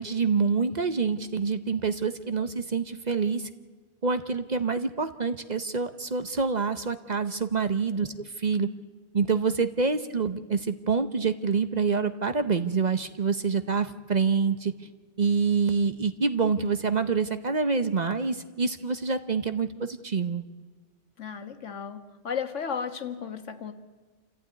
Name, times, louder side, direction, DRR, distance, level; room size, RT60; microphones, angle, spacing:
voice 1, 0.0-3.5 4.0-8.7 9.1-14.7 15.2-20.4, right 5 dB, 40° right, 10 dB, 0.8 m, -26 dB
voice 2, 21.2-23.7, left 7 dB, 80° left, 8 dB, 1.7 m, -34 dB
27.0 x 15.0 x 9.5 m, 1.5 s
omnidirectional pair, 1.2 m